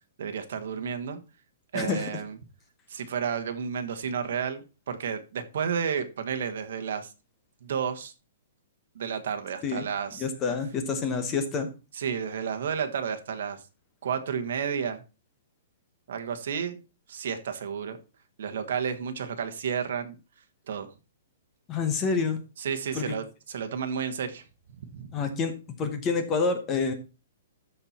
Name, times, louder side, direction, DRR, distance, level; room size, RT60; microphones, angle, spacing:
voice 1, 0.2-1.2 1.7-2.4 2.9-7.1 7.6-8.1 8.9-10.2 11.9-13.6 14.0-15.0 16.1-16.8 17.1-18.0 18.4-20.2 20.7-20.9 22.6-24.4 24.8-25.2, right 7 dB, 55° right, 7 dB, 1.4 m, -31 dB
voice 2, 1.7-2.1 9.6-9.9 10.2-11.7 21.7-22.4 22.9-23.1 25.1-25.5 25.8-26.9, left 5 dB, 15° left, 7 dB, 1.0 m, -27 dB
13.0 x 4.5 x 4.2 m, 0.31 s
hypercardioid pair, 175°, 0 cm